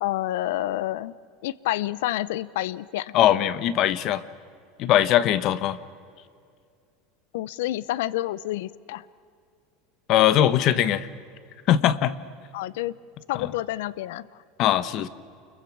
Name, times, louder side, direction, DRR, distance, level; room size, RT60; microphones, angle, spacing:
voice 1, 0.0-1.1 1.4-3.1 7.3-9.1 12.5-12.9 13.3-14.3, left 15 dB, 80° left, 20 dB, 0.6 m, -28 dB
voice 2, 3.1-4.2 4.8-5.8 10.1-11.1 11.7-12.2 13.4-13.5 14.6-15.1, left 11 dB, 45° left, 16 dB, 1.0 m, -21 dB
29.5 x 22.5 x 6.1 m, 2.3 s
supercardioid pair, 140°, 0 cm